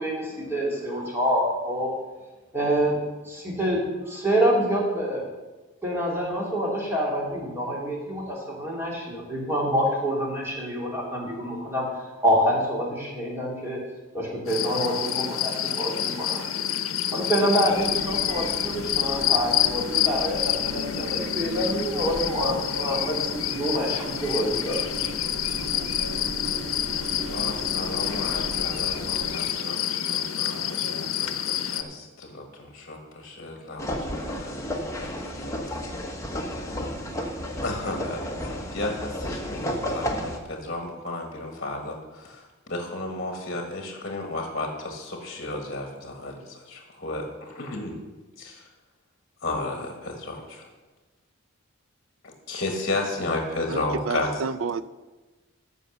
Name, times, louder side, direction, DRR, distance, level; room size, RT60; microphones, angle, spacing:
voice 1, 0.0-1.9 2.5-2.9 3.2-3.8 4.0-5.2 5.8-11.8 12.2-13.8 14.1-16.4 16.7-16.8 17.1-25.1, equal, 10° right, 2.9 m, -26 dB
sound 1, 14.5-31.8, left 10 dB, 90° left, 0.7 m, -28 dB
sound 2, 17.7-29.4, equal, 40° right, 2.4 m, -38 dB
voice 2, 27.3-35.1 35.5-35.6 37.6-47.9 48.4-48.7 49.4-50.6 52.5-54.3, left 2 dB, 50° left, 1.5 m, -33 dB
sound 3, 33.8-40.4, equal, 15° left, 1.2 m, -32 dB
voice 3, 53.7-54.8, right 5 dB, 75° right, 0.5 m, -30 dB
14.0 x 5.5 x 6.7 m
head